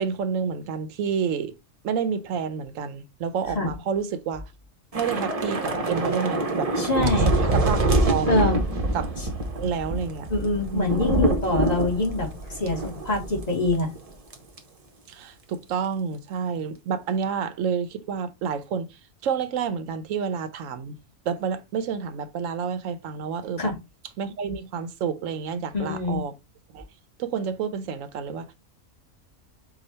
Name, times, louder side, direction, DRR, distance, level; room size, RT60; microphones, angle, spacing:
voice 1, 0.0-1.5 1.8-4.4 4.9-6.7 7.2-8.5 8.9-9.1 9.6-10.3 10.7-11.2 15.1-18.9 19.2-21.0 21.3-23.7 24.2-26.3 26.7-26.8 27.2-28.5, right 6 dB, 75° right, 1.0 m, -29 dB
Thunder / Rain, 4.9-13.5 13.8-14.0 14.3-14.6, right 2 dB, 35° right, 0.7 m, -25 dB
voice 2, 6.8-7.4 8.3-8.6 9.2-9.3 10.3-13.9 23.6-23.8 25.7-26.2, left 2 dB, 30° left, 1.4 m, -25 dB
4.9 x 2.4 x 4.0 m
omnidirectional pair, 1.4 m